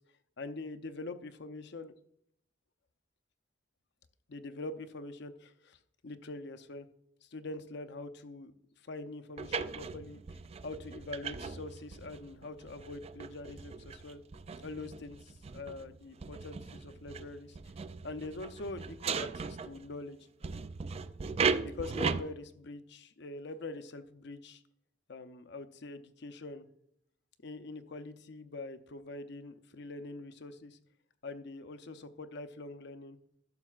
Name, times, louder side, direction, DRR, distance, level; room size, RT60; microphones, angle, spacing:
voice 1, 0.4-1.9 4.3-6.9 7.2-8.5 8.8-10.2 10.6-14.2 14.6-17.6 18.0-20.3 21.6-24.6 25.1-26.7 27.4-30.8 31.2-33.2, left 3 dB, 65° left, 10 dB, 0.7 m, -44 dB
sound 1, 9.4-20.0 20.4-22.2, right 5 dB, 35° right, 0.4 m, -38 dB
12.0 x 6.7 x 2.4 m, 0.69 s
head